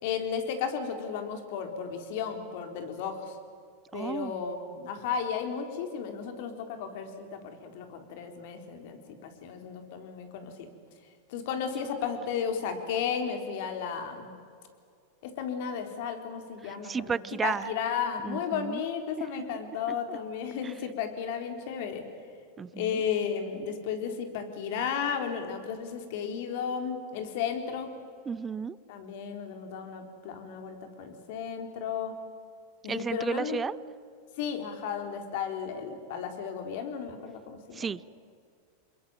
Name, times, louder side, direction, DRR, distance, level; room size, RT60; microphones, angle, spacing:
voice 1, 0.0-3.4 3.9-10.7 11.0-14.4 15.2-22.0 22.7-27.9 28.9-32.2 32.8-33.6 34.4-38.0, left 7 dB, 65° left, 6 dB, 4.1 m, -34 dB
voice 2, 3.9-4.4 16.8-17.7 18.2-18.8 20.1-20.2 20.6-20.7 22.6-23.0 28.3-28.8 32.9-33.8 37.7-38.2, right 6 dB, 20° right, 20 dB, 0.6 m, -33 dB
27.5 x 22.0 x 9.1 m, 2.2 s
hypercardioid pair, 120°, 0 cm